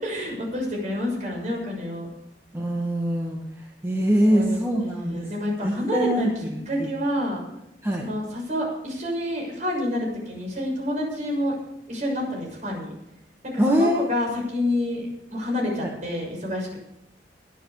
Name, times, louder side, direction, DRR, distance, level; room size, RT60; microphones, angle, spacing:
voice 1, 0.0-2.1 4.3-6.3 6.7-7.4 8.0-11.5 11.9-12.9 13.5-15.1 15.3-16.8, left 1 dB, 45° right, -1 dB, 6.6 m, -28 dB
voice 2, 2.5-5.3 5.6-6.9 7.8-8.0 13.6-14.1 15.8-15.9, equal, 15° right, -2 dB, 1.9 m, -24 dB
21.5 x 8.1 x 5.0 m, 0.90 s
head